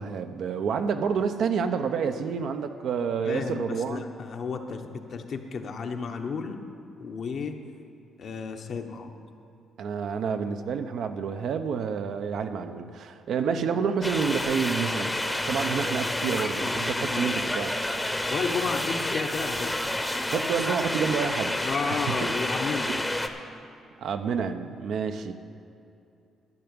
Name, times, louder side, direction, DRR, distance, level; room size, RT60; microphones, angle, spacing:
voice 1, 0.0-4.1 9.8-17.7 20.3-21.6 21.9-22.3 22.8-23.0 24.0-25.3, right 6 dB, 70° right, 7 dB, 0.7 m, -29 dB
voice 2, 3.2-6.6 7.0-7.6 8.2-9.1 16.2-17.4 18.3-19.9 21.6-23.0, left 5 dB, 55° left, 5 dB, 1.0 m, -33 dB
sound 1, 14.0-23.3, left 1 dB, 10° left, 0.8 m, -29 dB
12.5 x 5.8 x 8.8 m, 2.7 s
cardioid pair, 90°, 0 cm